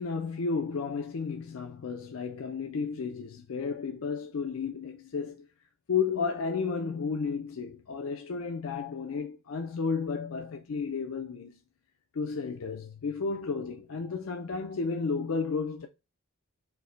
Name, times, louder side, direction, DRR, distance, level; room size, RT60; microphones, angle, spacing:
voice 1, 0.0-5.5 5.9-11.6 12.1-15.9, left 5 dB, 75° left, 0.4 m, -32 dB
4.5 x 2.1 x 3.8 m
head